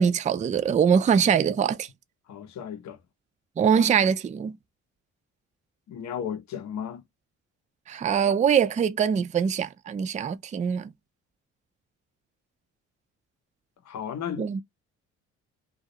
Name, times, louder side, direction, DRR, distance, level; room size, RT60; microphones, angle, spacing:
voice 1, 0.0-1.9 3.6-4.6 7.9-10.9 14.4-14.6, right 7 dB, 25° right, 0.4 m, -23 dB
voice 2, 2.3-3.0 5.9-7.0 13.8-14.6, left 8 dB, 65° left, 0.7 m, -34 dB
2.3 x 2.0 x 2.6 m
cardioid pair, 90°, 30 cm